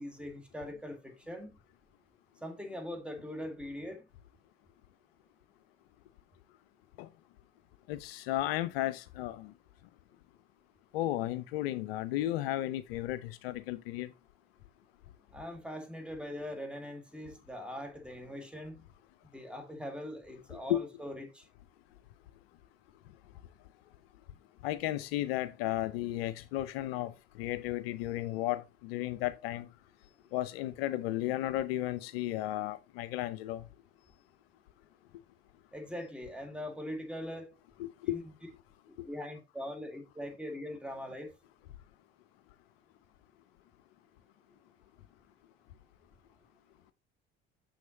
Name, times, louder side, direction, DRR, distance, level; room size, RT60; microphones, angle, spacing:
voice 1, 0.0-1.6 2.4-4.0 15.3-18.8 19.3-21.5 35.7-37.5 38.1-38.3 39.0-41.3, left 1 dB, 5° right, 1.9 m, -41 dB
voice 2, 7.9-9.5 10.9-14.1 20.7-20.8 24.6-29.7 30.3-33.6 38.0-38.2, left 14 dB, 65° left, 0.5 m, -34 dB
6.3 x 6.1 x 2.9 m
figure-of-eight pair, 55°, 32 cm